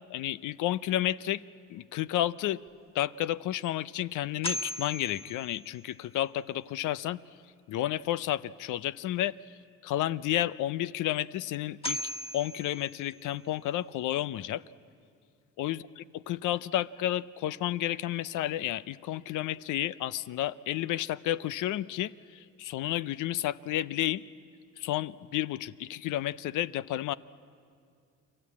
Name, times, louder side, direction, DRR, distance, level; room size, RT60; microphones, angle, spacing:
voice 1, 0.1-1.4 1.7-2.6 2.9-7.2 7.7-9.4 9.8-12.0 12.3-14.6 15.6-15.8 16.3-24.2 24.8-27.1, left 13 dB, 85° left, 17 dB, 0.6 m, -31 dB
sound 1, 3.0-3.1 3.6-3.7 4.4-6.1 11.1-11.2 11.8-13.5, equal, 20° left, 1.7 m, -38 dB
29.5 x 22.0 x 8.5 m, 2.3 s
cardioid pair, 90°, 30 cm